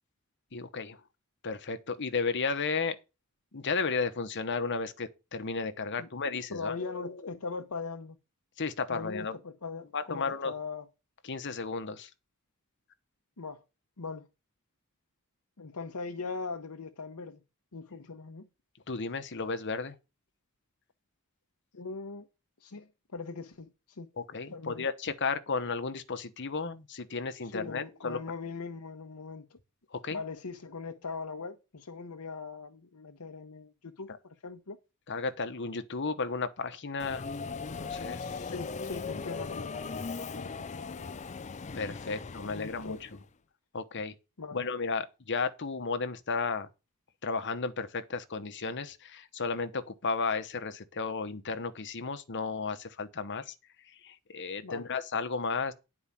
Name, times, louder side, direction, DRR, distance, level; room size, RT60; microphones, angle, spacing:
voice 1, 0.5-1.0 1.4-3.0 3.5-7.2 8.6-9.3 9.9-10.5 11.2-12.1 18.9-20.0 24.2-28.2 29.9-30.2 35.1-37.3 37.5-38.3 41.7-43.2 43.7-44.1 44.5-46.7 47.2-53.5 53.9-55.7, left 4 dB, 55° left, 1.1 m, -33 dB
voice 2, 6.5-8.2 8.9-10.9 13.4-13.6 14.0-14.3 15.6-17.4 17.7-18.5 21.7-22.3 22.6-24.1 24.5-24.9 27.4-29.6 30.1-34.8 38.1-40.0 40.3-41.3 42.1-42.2 42.4-43.0 44.4-44.6 54.6-54.9, left 4 dB, 90° left, 1.0 m, -40 dB
Subway metro underground, 37.0-43.2, left 4 dB, 30° left, 0.5 m, -39 dB
10.0 x 4.8 x 7.3 m
head